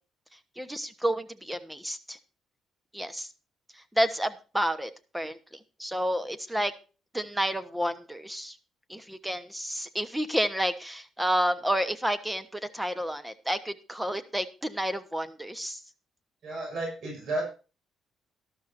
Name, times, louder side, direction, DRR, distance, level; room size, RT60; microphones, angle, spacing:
voice 1, 0.6-2.2 2.9-3.3 3.9-6.7 7.1-8.6 8.9-15.8, equal, 5° right, 11 dB, 1.1 m, -30 dB
voice 2, 16.4-17.5, right 2 dB, 65° right, -1 dB, 6.4 m, -32 dB
12.5 x 12.5 x 2.6 m, 0.34 s
cardioid pair, 90°, 0 cm